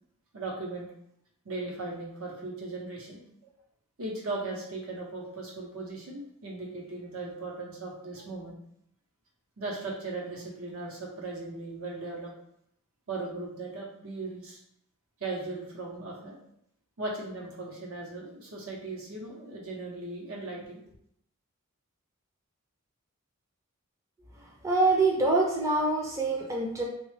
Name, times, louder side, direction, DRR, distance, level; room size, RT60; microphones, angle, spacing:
voice 1, 0.3-0.9 1.4-3.5 4.0-8.6 9.6-12.3 13.1-14.6 15.2-16.4 17.0-20.8, right 2 dB, 75° right, -2 dB, 0.9 m, -38 dB
voice 2, 24.6-26.8, right 2 dB, 15° right, -2 dB, 0.4 m, -25 dB
3.1 x 2.3 x 3.3 m, 0.72 s
head